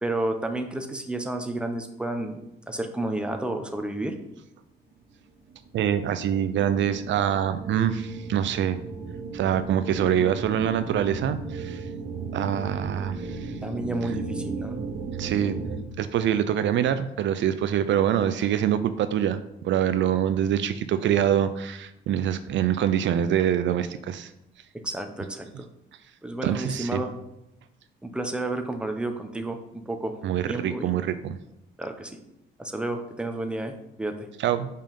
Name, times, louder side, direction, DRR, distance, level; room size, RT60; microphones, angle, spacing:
voice 1, 0.0-4.1 13.6-14.8 24.8-25.7 26.2-27.1 28.0-30.1 30.5-30.9 31.8-32.2 32.6-34.3, right 2 dB, 5° right, 4 dB, 0.9 m, -31 dB
sound 1, 5.1-5.2 5.4-15.8, right 4 dB, 45° right, 1.0 m, -35 dB
voice 2, 5.7-8.8 9.3-11.9 12.3-13.5 15.2-15.6 16.0-24.3 26.4-27.0 30.2-31.4 34.4-34.7, right 10 dB, 70° right, 11 dB, 0.5 m, -25 dB
5.5 x 5.2 x 5.4 m, 0.87 s
cardioid pair, 90°, 20 cm